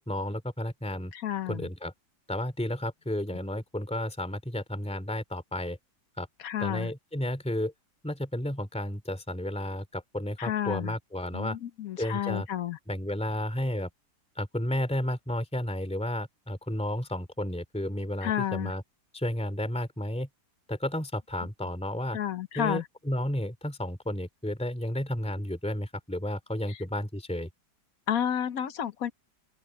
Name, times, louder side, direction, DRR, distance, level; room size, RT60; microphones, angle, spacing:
voice 1, 0.0-1.1 1.5-1.9 2.3-5.8 6.2-6.3 6.6-7.7 8.0-11.6 12.0-12.5 12.9-13.9 14.4-18.8 19.1-20.3 20.7-22.2 22.5-27.5, left 1 dB, 5° left, 3.1 m, -32 dB
voice 2, 1.1-1.7 6.4-6.9 10.4-10.9 11.3-12.8 18.2-18.7 22.1-22.8 28.1-29.1, left 10 dB, 60° left, 1.2 m, -31 dB
open air
omnidirectional pair, 1.8 m